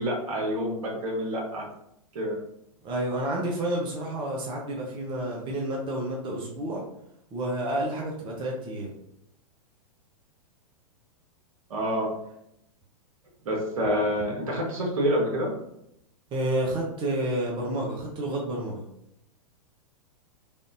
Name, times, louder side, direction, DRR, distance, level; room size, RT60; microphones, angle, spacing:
voice 1, 0.0-1.7 2.1-2.4 11.7-12.1 13.4-15.5, equal, 70° right, -1 dB, 1.2 m, -27 dB
voice 2, 2.8-6.8 7.3-8.9 16.3-18.8, right 1 dB, 25° right, -2 dB, 0.7 m, -30 dB
3.4 x 2.5 x 2.5 m, 0.77 s
hypercardioid pair, 105°, 19 cm